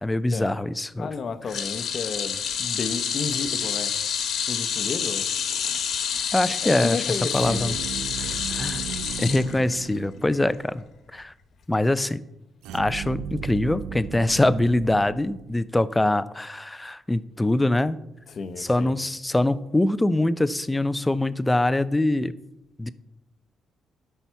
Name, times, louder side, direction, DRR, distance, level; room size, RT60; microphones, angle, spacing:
voice 1, 0.0-1.1 6.3-7.0 7.3-7.8 8.1-8.9 9.2-10.8 11.1-11.3 11.7-12.2 12.7-18.0 18.6-22.3 22.8-22.9, left 1 dB, 10° left, 0.5 m, -23 dB
voice 2, 1.0-3.9 4.5-5.3 6.6-7.8 18.3-19.0, left 5 dB, 50° left, 0.9 m, -32 dB
sound 1, 1.5-10.0 10.3-10.6 11.7-11.8, left 7 dB, 75° left, 1.4 m, -28 dB
sound 2, 7.3-10.6 12.6-15.9, right 8 dB, 90° right, 0.5 m, -36 dB
13.0 x 5.7 x 4.6 m
cardioid pair, 90°, 0 cm